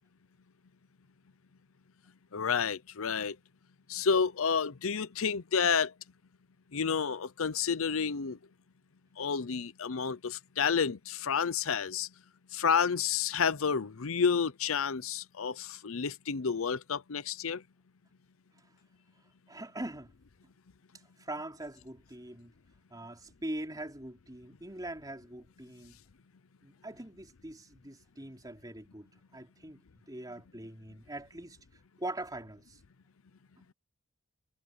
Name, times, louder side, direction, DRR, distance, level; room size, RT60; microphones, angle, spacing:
voice 1, 2.3-3.4 3.9-5.9 6.7-8.4 9.2-12.1 12.5-17.6, left 6 dB, 70° left, 0.7 m, -30 dB
voice 2, 19.5-20.1 21.2-22.5 22.9-26.0 26.6-29.1 29.3-31.6 32.0-32.8, right 1 dB, 15° right, 4.1 m, -42 dB
head